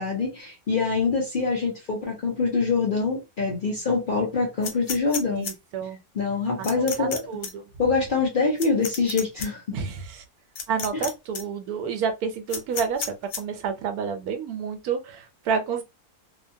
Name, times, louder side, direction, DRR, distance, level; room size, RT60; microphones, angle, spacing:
voice 1, 0.0-5.5 6.1-7.2 7.8-9.8 10.9-11.0, left 4 dB, 50° left, 0.6 m, -25 dB
sound 1, 4.6-5.5 6.6-7.2 7.4-7.5 8.6-9.5 10.6-11.1 11.3-11.4 12.5-13.4, left 6 dB, 90° left, 1.2 m, -31 dB
voice 2, 5.3-6.0 6.6-7.7 9.7-10.2 10.7-15.8, right 6 dB, 80° right, 1.1 m, -30 dB
2.7 x 2.2 x 2.6 m
omnidirectional pair, 1.6 m